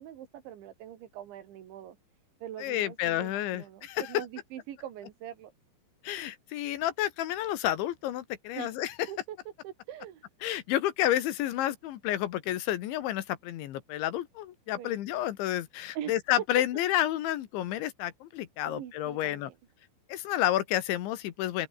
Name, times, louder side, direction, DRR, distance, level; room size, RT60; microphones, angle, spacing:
voice 1, 0.0-2.0 2.4-5.5 8.6-8.7 9.1-9.4 9.6-10.3 14.8-15.0 16.0-16.1 18.6-19.6, right 11 dB, 75° right, 4.5 m, -43 dB
voice 2, 2.6-4.3 6.0-8.9 10.4-19.5 20.1-21.7, left 13 dB, 80° left, 3.8 m, -30 dB
open air
omnidirectional pair, 5.4 m